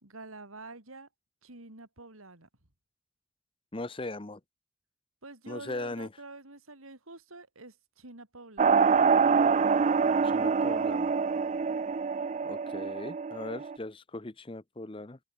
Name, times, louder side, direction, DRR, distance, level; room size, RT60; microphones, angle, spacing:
voice 1, 0.0-1.1 1.4-2.5 5.2-8.9, right 3 dB, 85° right, 4.1 m, -47 dB
voice 2, 3.7-4.4 5.5-6.1 10.2-11.1 12.4-15.2, left 2 dB, 25° left, 0.8 m, -39 dB
sound 1, 8.6-13.8, right 5 dB, 35° right, 0.3 m, -25 dB
head